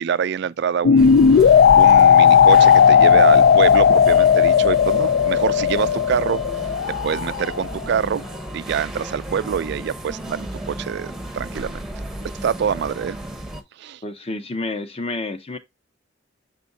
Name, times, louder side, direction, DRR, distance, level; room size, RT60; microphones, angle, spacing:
voice 1, 0.0-6.4 6.9-8.3 8.5-11.8 12.4-13.2 13.8-14.0, right 7 dB, 60° right, 0.3 m, -25 dB
sound 1, 0.8-7.7, left 7 dB, 55° left, 0.3 m, -14 dB
Supermarket Ambience, 1.0-13.6, right 1 dB, ahead, 0.8 m, -34 dB
voice 2, 14.0-15.6, left 2 dB, 30° left, 0.8 m, -29 dB
7.2 x 5.1 x 2.6 m
head